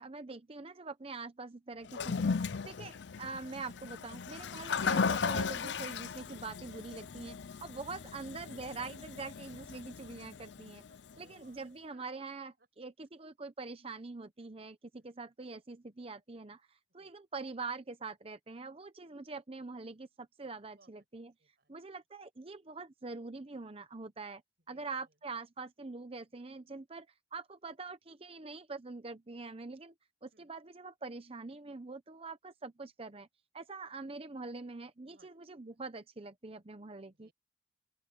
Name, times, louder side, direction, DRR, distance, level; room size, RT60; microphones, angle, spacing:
voice 1, 0.0-2.3 2.7-10.8 11.2-21.3 21.7-24.4 24.7-29.9 30.2-33.3 33.5-37.3, right 3 dB, 30° right, 0.8 m, -44 dB
Toilet flush, 1.9-11.1, left 5 dB, 70° left, 0.5 m, -36 dB
voice 2, 10.9-12.3 12.6-12.7 15.0-15.1 17.0-17.1 20.8-20.9 21.4-22.0 24.7-25.1 30.3-30.5 35.0-35.3 35.7-35.8 37.1-37.3, right 2 dB, 60° right, 7.3 m, -68 dB
open air
head